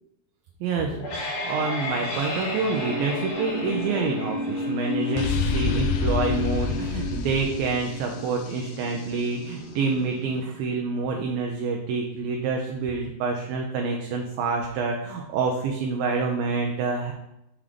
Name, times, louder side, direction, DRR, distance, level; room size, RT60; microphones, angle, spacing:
voice 1, 0.6-17.1, right 4 dB, 80° right, 1 dB, 2.2 m, -27 dB
sound 1, 0.8-11.8, left 3 dB, 60° left, 2.9 m, -32 dB
sound 2, 5.2-8.9, left 4 dB, 80° left, 2.0 m, -28 dB
7.2 x 3.7 x 5.0 m, 0.87 s
omnidirectional pair, 4.7 m